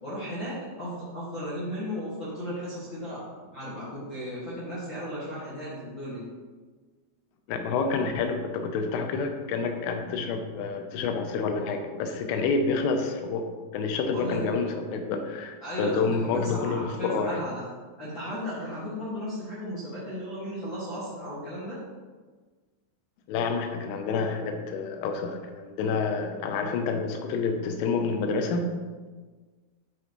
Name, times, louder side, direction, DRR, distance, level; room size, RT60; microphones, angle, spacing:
voice 1, 0.0-6.3 14.1-14.4 15.6-17.6 18.0-21.8, equal, 65° left, -11 dB, 1.1 m, -35 dB
voice 2, 7.5-13.5 13.7-17.4 23.3-28.7, left 4 dB, 85° left, 5 dB, 3.3 m, -28 dB
11.5 x 5.7 x 3.1 m, 1.4 s
omnidirectional pair, 5.7 m